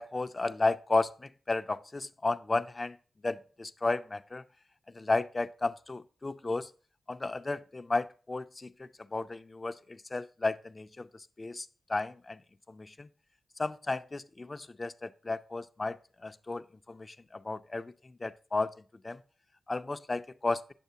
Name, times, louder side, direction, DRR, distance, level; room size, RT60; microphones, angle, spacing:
voice 1, 0.0-3.0 3.2-4.4 4.9-6.7 7.1-12.4 12.7-13.1 13.6-16.0 16.2-18.7 19.0-19.2 19.7-20.6, left 3 dB, 35° left, 0.5 m, -33 dB
9.1 x 6.6 x 2.7 m
cardioid pair, 60°, 0 cm